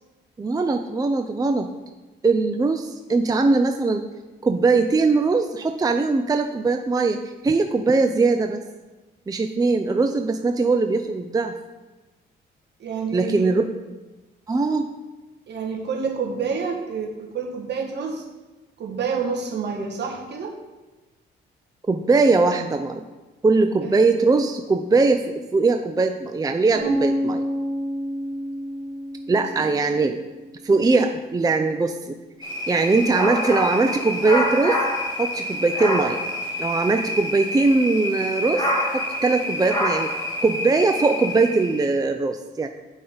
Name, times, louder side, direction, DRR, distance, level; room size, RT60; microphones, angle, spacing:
voice 1, 0.4-1.7 2.2-4.1 4.4-8.6 9.3-11.5 13.1-13.6 14.5-14.9 21.9-23.0 23.4-27.4 29.3-30.2 30.6-32.1 32.7-34.8 35.2-36.2 36.6-38.6 38.9-40.1 40.4-42.7, right 3 dB, 20° right, 6 dB, 0.5 m, -21 dB
voice 2, 12.8-13.5 15.5-18.2 18.8-20.5 23.8-24.0 29.6-29.7, right 5 dB, 60° right, 0 dB, 1.7 m, -28 dB
sound 1, 26.8-30.7, equal, 45° right, 2.4 m, -29 dB
sound 2, 32.4-41.8, left 1 dB, 20° left, 2.8 m, -27 dB
9.9 x 5.4 x 3.9 m, 1.2 s
cardioid pair, 90°, 20 cm